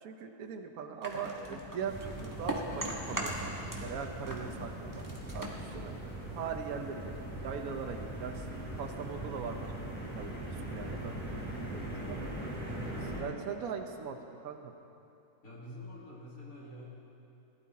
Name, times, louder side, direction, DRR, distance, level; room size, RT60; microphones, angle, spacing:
voice 1, 0.0-3.6 3.8-5.0 5.3-5.9 6.3-9.7 10.1-12.5 13.0-14.2 14.4-14.7, right 6 dB, 70° right, 5 dB, 1.3 m, -41 dB
sound 1, 1.0-4.0 4.2-6.6, right 1 dB, 15° right, 1.3 m, -39 dB
sound 2, 1.9-13.2, right 1 dB, 5° left, 3.1 m, -41 dB
voice 2, 15.4-16.9, left 1 dB, 65° left, -5 dB, 2.8 m, -46 dB
18.5 x 12.0 x 4.2 m, 2.7 s
omnidirectional pair, 1.6 m